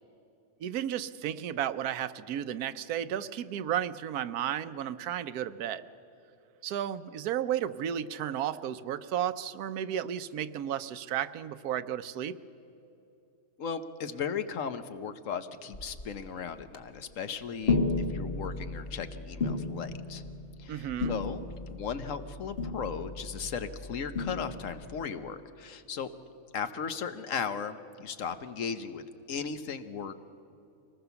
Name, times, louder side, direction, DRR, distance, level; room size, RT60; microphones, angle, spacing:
voice 1, 0.6-5.9 6.6-12.4 20.7-21.1, right 10 dB, 90° right, 13 dB, 1.2 m, -33 dB
voice 2, 13.6-17.8 18.1-20.2 20.6-26.1 26.5-30.3, left 6 dB, 65° left, 10 dB, 1.2 m, -36 dB
sound 1, 15.7-16.3 16.7-17.0 17.6-25.0, left 3 dB, 45° left, 1.3 m, -34 dB
24.5 x 19.5 x 7.0 m, 2.9 s
omnidirectional pair, 1.5 m